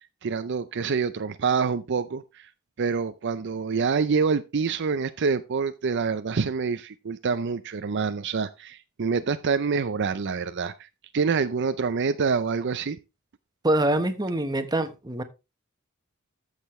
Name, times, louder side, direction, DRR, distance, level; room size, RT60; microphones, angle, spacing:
voice 1, 0.2-2.5 2.8-10.9 11.1-13.0, right 5 dB, 55° right, 0.5 m, -26 dB
voice 2, 13.6-15.2, right 1 dB, 20° right, 1.1 m, -24 dB
13.5 x 6.6 x 3.1 m
head